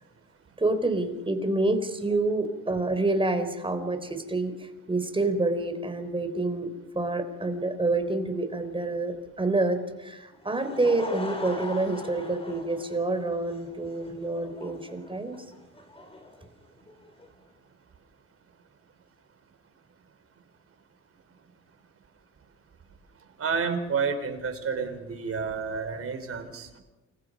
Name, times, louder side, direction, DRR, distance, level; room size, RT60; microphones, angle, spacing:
voice 1, 0.6-4.6 4.9-6.7 7.0-15.4, right 2 dB, 15° right, 9 dB, 3.9 m, -27 dB
Laughter / Crowd, 10.3-17.3, left 2 dB, 20° left, 5.3 m, -41 dB
voice 2, 23.4-26.8, right 5 dB, 50° right, 7 dB, 4.6 m, -30 dB
29.0 x 22.0 x 5.4 m, 1.1 s
cardioid pair, 90°, 30 cm